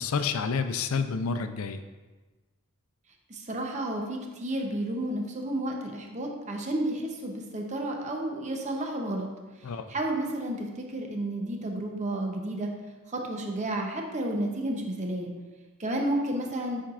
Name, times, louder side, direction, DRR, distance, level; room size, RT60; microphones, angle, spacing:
voice 1, 0.0-1.8 9.6-9.9, left 5 dB, 75° left, 9 dB, 0.4 m, -29 dB
voice 2, 3.3-9.3 9.9-12.7 13.1-15.3 15.8-16.8, right 1 dB, 35° right, 1 dB, 0.7 m, -31 dB
8.7 x 4.4 x 2.4 m, 1.3 s
head